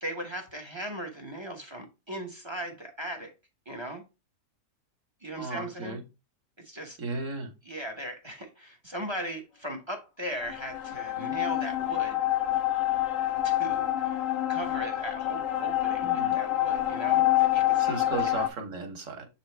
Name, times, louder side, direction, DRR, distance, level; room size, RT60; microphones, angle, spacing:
voice 1, 0.0-3.3 3.7-4.0 5.2-6.0 6.6-7.0 7.7-12.2 13.4-14.2 14.5-17.9, right 1 dB, 25° right, 0.7 m, -38 dB
voice 2, 5.3-6.0 7.0-7.5 16.0-16.4 17.8-19.3, right 3 dB, 55° right, 1.5 m, -35 dB
sound 1, 10.4-18.5, left 14 dB, 60° left, 1.0 m, -27 dB
7.3 x 4.0 x 3.2 m
omnidirectional pair, 1.7 m